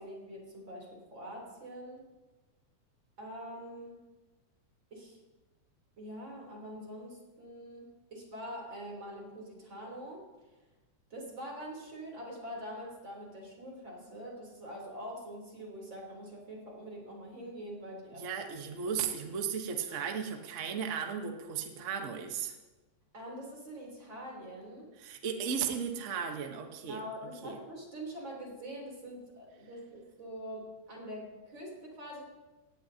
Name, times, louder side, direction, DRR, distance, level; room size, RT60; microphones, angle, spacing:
voice 1, 0.0-2.1 3.2-4.1 4.9-5.2 6.0-10.2 11.1-18.3 23.1-24.9 26.9-32.2, equal, 35° right, -2 dB, 4.3 m, -44 dB
voice 2, 18.2-22.5 25.0-27.0 27.4-27.6, right 7 dB, 70° right, 3 dB, 0.7 m, -35 dB
18.0 x 16.5 x 2.9 m, 1.2 s
omnidirectional pair, 3.5 m